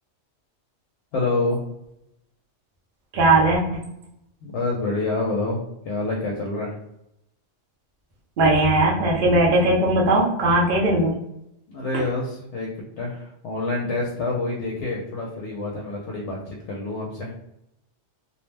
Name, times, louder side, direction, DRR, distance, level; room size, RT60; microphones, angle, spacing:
voice 1, 1.1-1.6 4.4-5.6 5.8-6.7 11.7-12.7 13.0-17.3, left 2 dB, 70° left, -2 dB, 0.8 m, -27 dB
voice 2, 3.1-3.8 8.4-11.1, right 2 dB, 55° right, -3 dB, 0.8 m, -19 dB
2.5 x 2.0 x 3.1 m, 0.82 s
omnidirectional pair, 1.2 m